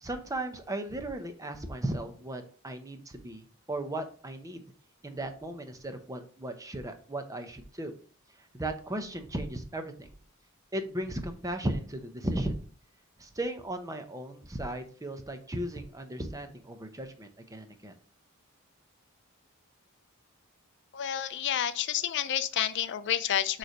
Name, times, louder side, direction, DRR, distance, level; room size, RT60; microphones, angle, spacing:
voice 1, 0.0-4.6 5.0-7.9 8.5-10.1 10.7-12.5 13.2-17.9, right 1 dB, 15° right, 7 dB, 0.7 m, -36 dB
voice 2, 20.9-23.6, left 10 dB, 55° left, 12 dB, 0.4 m, -29 dB
6.7 x 3.3 x 5.1 m, 0.42 s
head